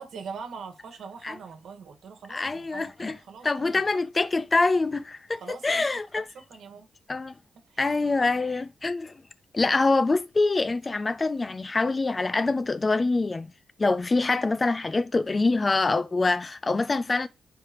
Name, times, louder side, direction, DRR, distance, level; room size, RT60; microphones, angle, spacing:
voice 1, 0.0-3.8 5.4-5.8 6.3-6.9 7.7-7.9, right 5 dB, 80° right, 1.5 m, -42 dB
voice 2, 2.3-3.2 3.4-6.3 7.1-7.3 7.8-9.2 9.5-13.5 13.8-17.3, left 3 dB, 30° left, 0.4 m, -25 dB
9.7 x 3.3 x 3.0 m
cardioid pair, 95°, 0 cm